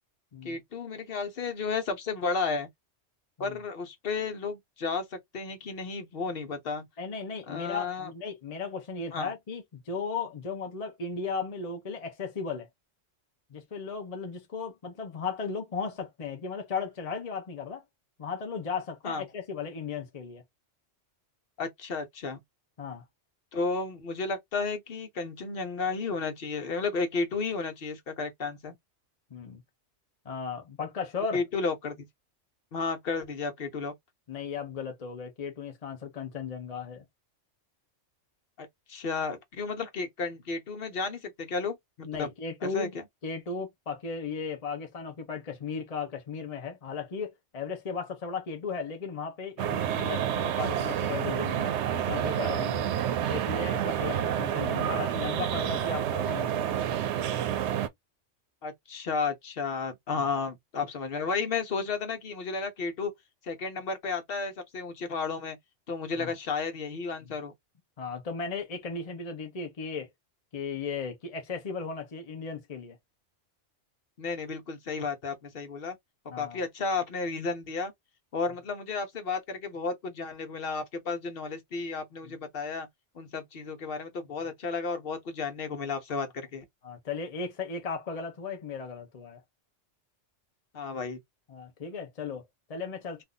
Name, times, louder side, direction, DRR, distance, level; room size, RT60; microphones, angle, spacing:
voice 1, 0.4-2.7 3.4-6.8 7.5-8.1 9.1-9.3 19.0-19.2 21.6-22.4 23.5-28.7 31.3-32.1 32.7-33.9 38.6-42.3 42.6-43.0 58.6-63.1 63.4-65.6 65.9-67.5 74.2-75.9 76.4-77.9 78.3-82.9 83.1-86.6 90.7-91.2, left 4 dB, 55° left, 1.1 m, -33 dB
voice 2, 7.0-12.7 13.5-17.8 18.2-20.4 22.8-23.0 29.3-29.6 30.2-31.4 34.3-37.0 42.0-42.9 43.2-52.9 53.3-56.6 60.1-60.4 66.2-66.3 67.2-67.3 68.0-70.1 70.5-73.0 76.3-76.6 82.2-82.4 86.8-89.4 91.5-93.2, left 5 dB, 35° left, 0.7 m, -36 dB
sound 1, 49.6-57.9, right 10 dB, 70° right, 0.8 m, -29 dB
2.7 x 2.5 x 3.6 m
omnidirectional pair, 1.2 m